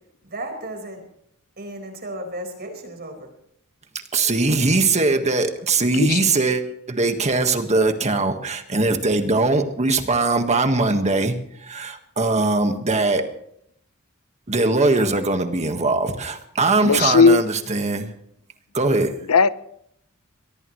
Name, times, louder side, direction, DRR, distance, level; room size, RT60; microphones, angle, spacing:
voice 1, 0.2-1.0 1.6-3.3, right 1 dB, 50° right, 4 dB, 4.8 m, -34 dB
voice 2, 4.1-6.6 6.9-13.2 14.5-18.1 18.7-19.1, right 3 dB, 30° right, 6 dB, 1.6 m, -21 dB
voice 3, 16.8-17.4 19.3-19.5, left 5 dB, 85° left, 15 dB, 0.8 m, -15 dB
24.0 x 18.0 x 3.2 m, 0.70 s
head